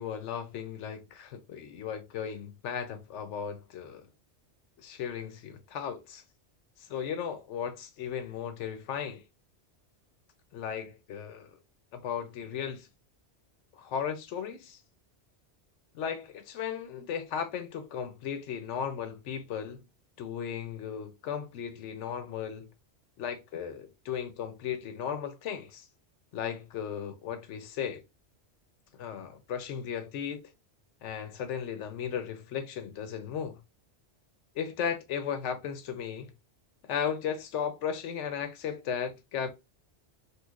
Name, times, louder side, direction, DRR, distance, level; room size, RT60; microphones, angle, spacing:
voice 1, 0.0-4.0 4.8-6.2 6.9-9.2 10.5-11.5 11.9-12.9 13.7-14.8 15.9-19.8 20.2-22.7 23.2-25.8 26.3-28.0 29.0-30.5 31.0-33.6 34.6-36.3 36.9-39.5, left 8 dB, 85° left, 0.9 m, -36 dB
3.1 x 2.7 x 2.3 m
omnidirectional pair, 1.2 m